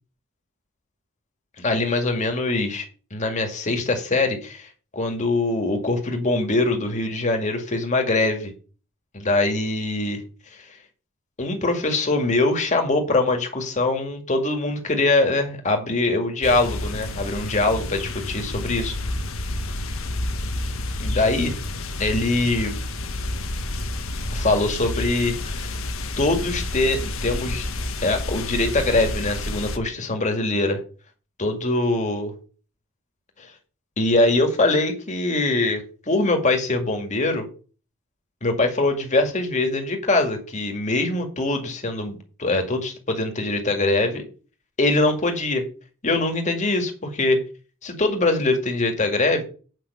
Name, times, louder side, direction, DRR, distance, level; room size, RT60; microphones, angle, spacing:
voice 1, 1.6-2.9 3.1-8.5 9.1-10.2 11.4-18.9 21.0-21.5 22.0-22.8 24.3-25.7 26.2-27.7 28.0-30.8 31.4-32.3 33.4-33.5 34.0-37.5 38.4-44.2 44.8-45.6 46.0-47.4 47.8-49.4, left 2 dB, 35° left, 4 dB, 2.1 m, -23 dB
sound 1, 16.4-29.8, left 2 dB, 90° left, 1.4 m, -29 dB
8.8 x 5.7 x 7.0 m, 0.38 s
head